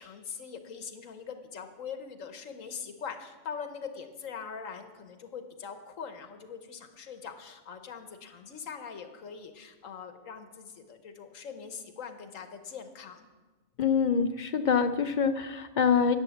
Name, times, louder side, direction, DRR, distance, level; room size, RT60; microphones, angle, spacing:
voice 1, 0.0-13.3, left 6 dB, 80° left, 7 dB, 1.4 m, -42 dB
voice 2, 13.8-16.2, left 6 dB, 65° left, 10 dB, 0.4 m, -25 dB
10.5 x 8.7 x 7.1 m, 1.3 s
omnidirectional pair, 1.3 m